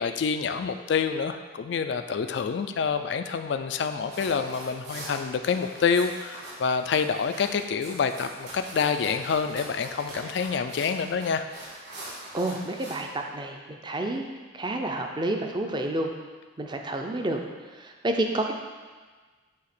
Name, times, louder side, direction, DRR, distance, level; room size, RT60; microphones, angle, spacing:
voice 1, 0.0-11.5, left 6 dB, 60° left, 8 dB, 0.3 m, -27 dB
sound 1, 4.0-13.0, right 1 dB, 55° right, 2.1 m, -43 dB
voice 2, 12.3-14.3 14.5-16.1 16.6-17.4 17.7-18.5, right 1 dB, 20° right, 3 dB, 0.5 m, -29 dB
8.4 x 2.9 x 5.9 m, 1.4 s
head